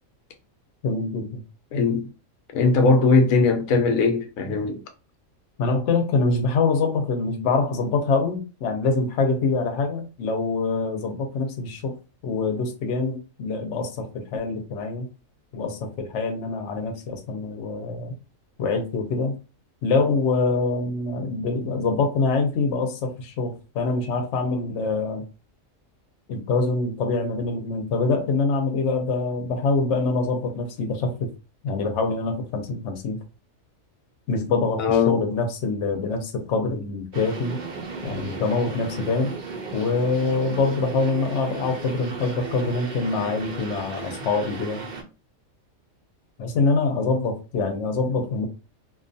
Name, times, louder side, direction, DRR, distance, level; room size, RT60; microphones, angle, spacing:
voice 1, 0.8-1.4 5.6-15.1 15.5-18.1 18.6-19.4 19.8-25.2 26.3-31.1 31.6-33.2 34.3-37.6 38.0-39.3 39.7-44.8 46.4-48.5, left 3 dB, 65° left, 0.9 m, -25 dB
voice 2, 1.7-2.1 2.5-4.8 34.8-35.2, left 4 dB, 90° left, 1.0 m, -19 dB
sound 1, 37.1-45.0, right 4 dB, 55° right, 0.5 m, -36 dB
2.5 x 2.3 x 2.5 m
omnidirectional pair, 1.4 m